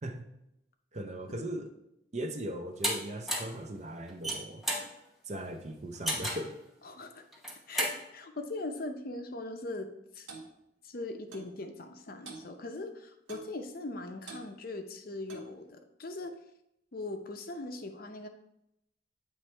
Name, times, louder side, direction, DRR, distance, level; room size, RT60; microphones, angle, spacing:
voice 1, 0.9-1.7 2.1-4.6 5.3-6.6, right 1 dB, 35° right, 6 dB, 0.6 m, -38 dB
sound 1, 2.8-2.9 3.3-3.6 4.1-4.9 6.1-6.5 7.3-8.0, equal, ahead, 0.9 m, -31 dB
voice 2, 6.8-7.2 7.7-10.3 10.8-16.4 16.9-18.3, left 2 dB, 50° left, 6 dB, 0.6 m, -40 dB
Clock, 10.3-10.5 11.3-11.5 12.3-12.5 13.3-13.5 14.3-14.5 15.3-15.6, right 4 dB, 85° right, 1.1 m, -46 dB
8.1 x 3.2 x 4.3 m, 0.83 s
head